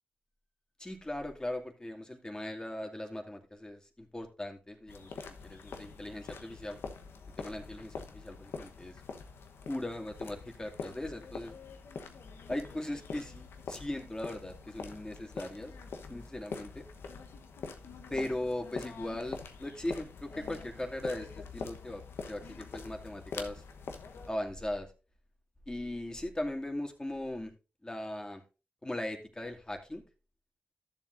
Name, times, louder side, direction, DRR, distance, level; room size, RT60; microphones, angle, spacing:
voice 1, 0.8-5.1 5.4-6.8 7.4-9.0 9.7-11.5 12.5-15.7 16.1-16.8 18.1-22.0 22.3-23.6 24.3-24.9 25.7-27.5 27.8-28.4 28.8-30.0, left 1 dB, 20° left, 3 dB, 2.4 m, -39 dB
sound 1, 4.9-24.3, left 5 dB, 85° left, 1.1 m, -45 dB
13.0 x 7.4 x 2.6 m, 0.30 s
cardioid pair, 45°, 4 cm